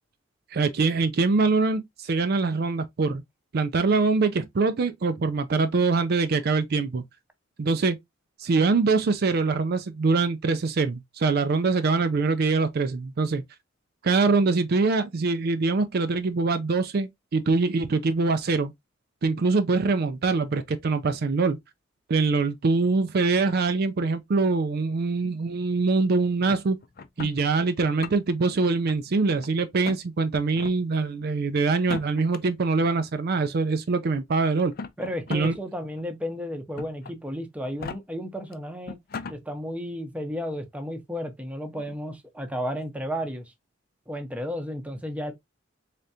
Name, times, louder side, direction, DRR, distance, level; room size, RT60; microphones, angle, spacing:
voice 1, 0.5-3.2 3.5-7.0 7.6-8.0 8.4-13.4 14.0-18.7 19.2-21.6 22.1-26.8 27.2-34.7 35.3-35.6, right 4 dB, 55° right, 0.4 m, -24 dB
sound 1, 26.4-27.4 27.8-28.5 28.9-29.5 29.8-30.0 30.5-30.8 31.7-32.4 33.4-33.5 34.6-35.6 36.0-36.1 36.8-37.1 37.6-38.0 38.5-38.6 38.8-39.4, left 4 dB, 50° left, 0.4 m, -37 dB
voice 2, 35.0-39.0 39.3-43.5 44.1-45.3, equal, 5° right, 0.7 m, -33 dB
3.8 x 3.4 x 2.7 m
head